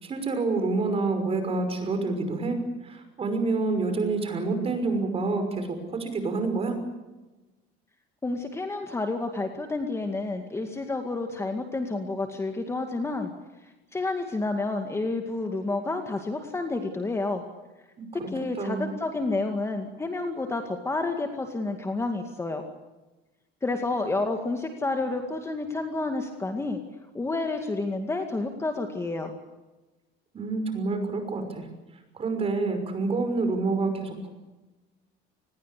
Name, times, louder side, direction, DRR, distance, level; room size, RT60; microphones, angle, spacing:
voice 1, 0.0-6.8 18.0-18.3 18.6-18.9 30.3-31.7 32.1-34.3, right 3 dB, 30° right, 7 dB, 5.8 m, -28 dB
voice 2, 8.2-13.3 13.9-17.4 18.1-22.6 23.6-26.8 27.1-29.3, left 3 dB, 15° left, 5 dB, 2.1 m, -30 dB
28.0 x 20.5 x 8.4 m, 1.1 s
cardioid pair, 150°, 20 cm